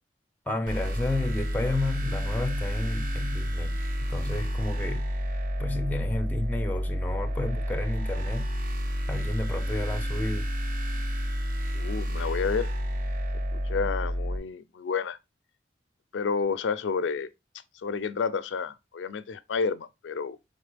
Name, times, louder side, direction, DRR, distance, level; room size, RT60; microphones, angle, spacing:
voice 1, 0.5-3.8 4.0-5.1 5.6-8.5 9.1-10.5, left 2 dB, 10° left, 0.4 m, -31 dB
sound 1, 0.7-14.4, equal, 45° right, 0.6 m, -30 dB
voice 2, 11.7-12.7 13.5-15.2 16.1-17.3 17.8-20.4, left 5 dB, 85° left, 0.4 m, -30 dB
4.2 x 3.6 x 3.3 m
head